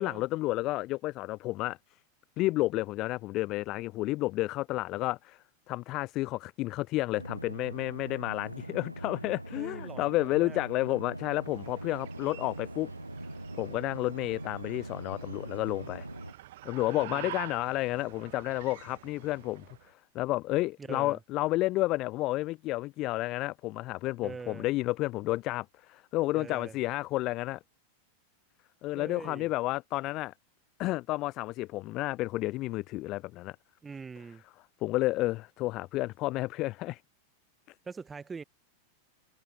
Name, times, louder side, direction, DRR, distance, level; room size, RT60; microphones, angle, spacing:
voice 1, 0.0-1.8 2.4-5.4 5.7-12.9 13.6-16.1 16.6-27.6 28.8-30.3 30.8-33.6 34.8-37.0, left 18 dB, 40° left, 0.4 m, -31 dB
sound 1, 7.1-16.3, right 1 dB, 85° right, 1.2 m, -42 dB
voice 2, 9.6-10.6 16.9-17.3 20.8-21.2 24.2-24.7 26.3-26.8 28.9-29.5 33.8-34.4 37.8-38.4, right 5 dB, 15° right, 0.6 m, -43 dB
sound 2, 11.2-19.9, right 15 dB, 55° right, 0.9 m, -48 dB
figure-of-eight pair, 90°, 0 cm